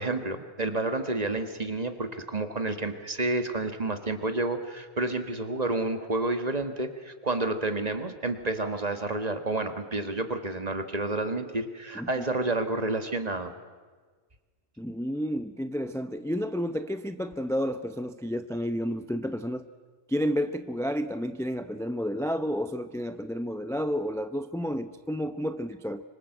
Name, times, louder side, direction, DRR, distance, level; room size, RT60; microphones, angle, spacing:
voice 1, 0.0-13.5, right 2 dB, 35° right, 8 dB, 1.7 m, -30 dB
voice 2, 14.8-19.7 20.1-26.0, equal, 5° left, 10 dB, 0.6 m, -31 dB
25.5 x 25.0 x 7.9 m, 1.5 s
omnidirectional pair, 1.1 m